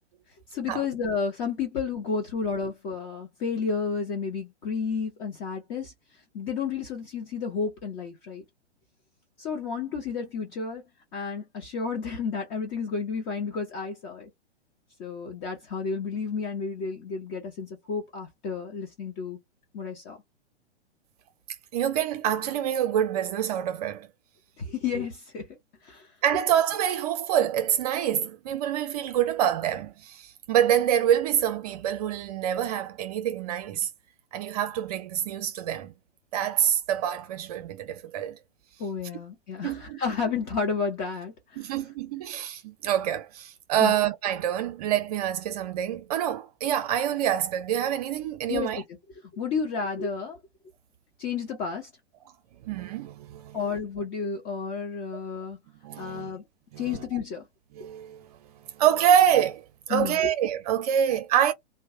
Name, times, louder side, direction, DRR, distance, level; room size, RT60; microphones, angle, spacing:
voice 1, 0.5-5.9 6.3-8.4 9.4-10.8 11.1-14.3 15.0-19.4 19.7-20.2 24.6-25.5 25.8-26.1 38.8-39.7 40.0-41.3 43.8-43.9 48.5-48.8 49.3-50.4 51.2-51.9 53.5-55.6 56.0-56.4 56.8-57.5 59.9-60.2, left 5 dB, 15° left, 0.4 m, -31 dB
voice 2, 21.7-24.1 26.2-33.9 34.3-35.9 36.3-38.4 39.6-40.0 41.6-48.8 52.6-53.8 55.1-55.2 55.8-56.3 56.7-56.9 57.7-61.5, right 10 dB, 35° right, 0.7 m, -26 dB
2.3 x 2.1 x 3.4 m
figure-of-eight pair, 110°, 34 cm